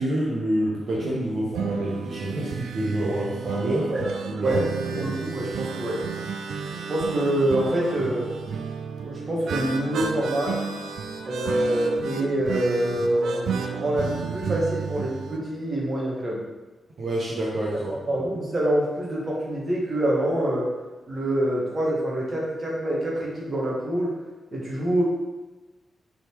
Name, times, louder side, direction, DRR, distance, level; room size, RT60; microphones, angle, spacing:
voice 1, 0.0-3.9 4.3-4.6 4.8-5.0 17.0-18.0, right 1 dB, 55° right, -6 dB, 1.2 m, -27 dB
sound 1, 0.9-15.4, right 6 dB, 90° right, 0.5 m, -32 dB
voice 2, 5.0-6.0 6.9-8.3 9.0-10.5 11.2-16.4 18.1-20.7 21.1-24.1 24.5-25.0, right 1 dB, 35° right, -4 dB, 1.7 m, -25 dB
6.7 x 4.2 x 4.7 m, 1.2 s
wide cardioid pair, 150°, 0 cm